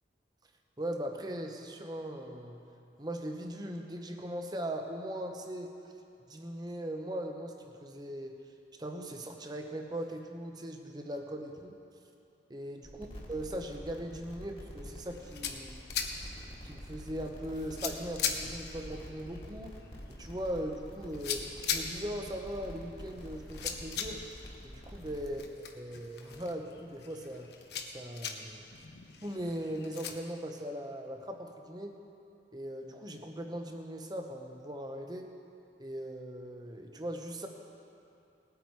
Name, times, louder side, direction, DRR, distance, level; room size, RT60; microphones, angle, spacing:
voice 1, 0.8-2.6 3.0-5.7 6.3-8.4 8.8-11.8 12.5-15.8 16.6-19.8 20.1-24.2 24.6-25.4 25.8-27.5 27.9-28.7 29.2-32.0 32.5-35.3 35.8-37.5, right 1 dB, 25° right, 3 dB, 0.9 m, -39 dB
sound 1, 12.8-25.3, equal, 35° left, 1.7 m, -47 dB
sound 2, 15.0-30.1, left 7 dB, 70° left, 0.9 m, -41 dB
19.5 x 8.4 x 4.7 m, 2.7 s
head